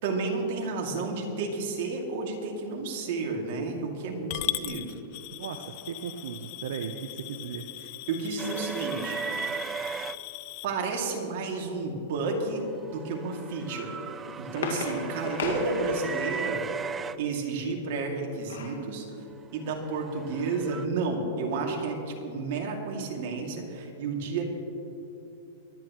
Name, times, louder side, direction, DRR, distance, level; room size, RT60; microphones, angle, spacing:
voice 1, 0.0-4.9 8.1-9.2 10.6-13.9 14.4-16.6 17.2-19.1 19.5-24.4, right 3 dB, 60° right, 0 dB, 2.5 m, -31 dB
Coin (dropping) / Glass, 4.3-10.7, left 17 dB, 50° left, 0.5 m, -38 dB
voice 2, 5.4-7.6, right 7 dB, 75° right, 6 dB, 0.8 m, -37 dB
sound 1, 8.4-10.2 12.6-17.2 19.6-20.9, right 6 dB, 20° right, 0.3 m, -36 dB
sound 2, 13.9-16.4 17.9-18.8 19.3-19.4 19.7-19.9, left 4 dB, 90° left, 2.0 m, -35 dB
23.5 x 10.5 x 3.1 m, 2.9 s
hypercardioid pair, 135°, 0 cm